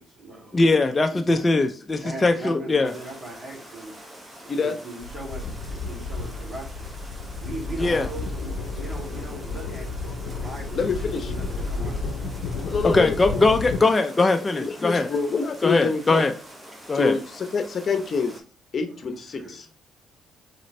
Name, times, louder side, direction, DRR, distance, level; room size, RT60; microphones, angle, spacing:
voice 1, 0.0-0.6 1.1-1.4 2.0-3.9 4.4-6.9 7.4-9.9 10.3-12.0 19.1-19.6, right 2 dB, 40° right, 2.6 m, -39 dB
voice 2, 0.5-2.9 7.8-8.1 12.8-15.1 15.6-16.3 16.9-17.2, left 3 dB, 25° left, 0.5 m, -21 dB
sound 1, 2.8-18.4, equal, 20° right, 1.5 m, -45 dB
sound 2, 5.0-13.8, left 3 dB, 85° left, 0.6 m, -32 dB
voice 3, 10.7-11.3 12.7-13.3 14.2-16.2 16.9-18.4 18.7-19.7, left 5 dB, 50° left, 0.8 m, -27 dB
4.3 x 3.8 x 3.2 m
cardioid pair, 90°, 0 cm